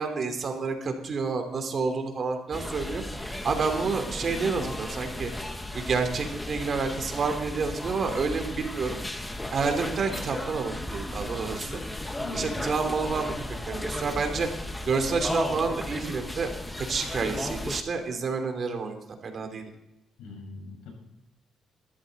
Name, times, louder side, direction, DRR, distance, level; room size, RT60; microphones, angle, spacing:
voice 1, 0.0-3.0 3.4-5.3 5.7-9.0 9.5-11.8 12.3-13.3 13.7-14.5 14.8-19.0 19.2-19.7, right 4 dB, 50° right, 5 dB, 3.0 m, -29 dB
sound 1, 2.5-17.8, left 1 dB, 10° left, 1.5 m, -35 dB
voice 2, 12.2-12.6 20.2-20.9, left 4 dB, 90° left, 1 dB, 6.1 m, -41 dB
20.5 x 13.5 x 4.1 m, 0.88 s
cardioid pair, 90°, 0 cm